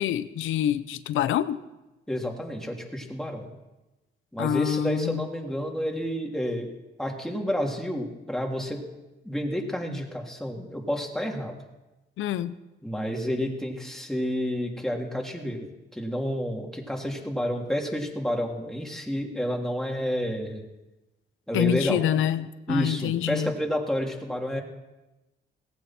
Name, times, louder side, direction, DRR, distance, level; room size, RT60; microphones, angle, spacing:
voice 1, 0.0-1.6 4.4-5.2 12.2-12.5 21.5-23.5, left 10 dB, 85° left, 14 dB, 0.9 m, -26 dB
voice 2, 2.1-3.5 4.3-6.7 7.0-8.8 9.2-11.5 12.8-15.7 15.9-20.6 21.5-22.0 22.7-24.6, equal, ahead, 0 dB, 3.1 m, -30 dB
18.0 x 16.0 x 4.5 m, 1.0 s
cardioid pair, 90°, 20 cm